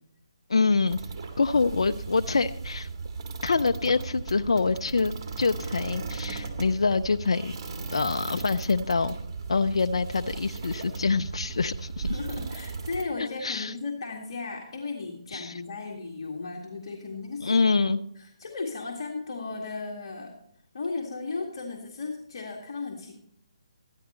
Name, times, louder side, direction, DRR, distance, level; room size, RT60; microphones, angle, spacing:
voice 1, 0.5-1.0 1.4-2.9 3.4-7.5 7.9-9.2 9.5-12.2 13.2-13.7 15.3-15.6 17.4-18.0, left 4 dB, 70° left, 9 dB, 0.5 m, -25 dB
sound 1, 0.9-13.0, right 4 dB, 35° right, 2.0 m, -36 dB
voice 2, 12.0-17.6 18.2-20.3 20.7-23.2, left 3 dB, 50° left, 0 dB, 2.0 m, -35 dB
14.5 x 10.5 x 4.4 m, 0.73 s
figure-of-eight pair, 150°, 3 cm